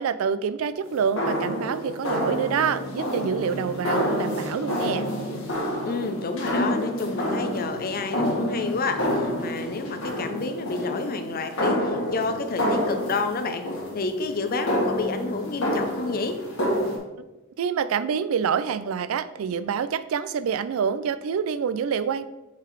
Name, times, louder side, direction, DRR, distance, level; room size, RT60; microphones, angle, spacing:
voice 1, 0.0-5.1 17.6-22.2, right 7 dB, 70° right, 14 dB, 0.3 m, -26 dB
sound 1, 0.8-17.0, equal, 65° left, 1.7 m, -28 dB
voice 2, 5.9-13.7 13.9-16.4, left 4 dB, 45° left, 7 dB, 0.6 m, -29 dB
5.6 x 4.0 x 4.6 m, 1.0 s
head